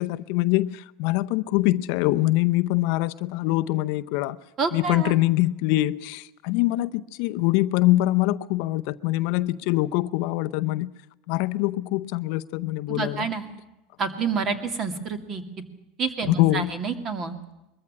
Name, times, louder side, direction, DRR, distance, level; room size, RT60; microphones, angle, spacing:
voice 1, 0.0-4.4 4.7-10.9 11.3-13.3 16.3-16.7, left 17 dB, 60° left, 0.7 m, -24 dB
voice 2, 4.6-5.2 12.9-13.5 14.0-15.4 16.0-17.3, right 5 dB, 30° right, 2.4 m, -28 dB
21.5 x 14.5 x 9.8 m
supercardioid pair, 145°, 0 cm